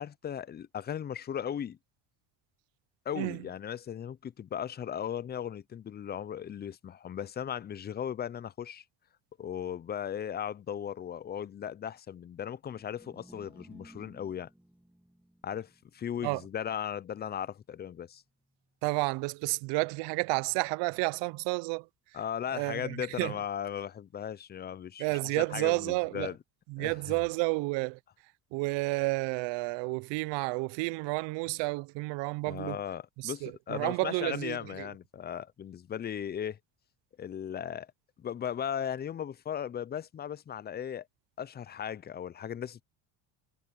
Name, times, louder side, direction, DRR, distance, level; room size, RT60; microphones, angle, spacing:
voice 1, 0.0-1.8 3.1-8.8 9.4-14.5 15.4-18.2 22.1-25.1 25.3-26.4 26.8-27.2 32.5-36.6 37.2-37.9 38.2-41.1 41.4-42.8, left 9 dB, 25° left, 0.4 m, -37 dB
sound 1, 12.6-19.0, right 1 dB, 5° right, 1.7 m, -58 dB
voice 2, 18.8-21.9 22.5-23.4 25.0-26.3 26.7-28.0 28.5-32.8 33.2-34.9, right 25 dB, 75° right, 0.6 m, -31 dB
cardioid pair, 115°, 44 cm